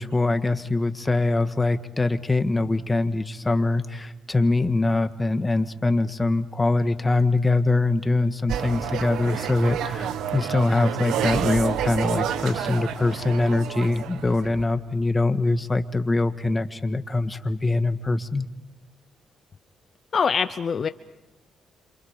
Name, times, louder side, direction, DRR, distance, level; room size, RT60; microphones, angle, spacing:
voice 1, 0.0-18.5, left 2 dB, 20° left, 8 dB, 1.6 m, -23 dB
sound 1, 8.5-14.6, right 9 dB, 85° right, 1.5 m, -29 dB
voice 2, 20.1-20.9, left 6 dB, 45° left, 11 dB, 0.8 m, -23 dB
28.0 x 26.5 x 5.2 m, 0.99 s
cardioid pair, 90°, 0 cm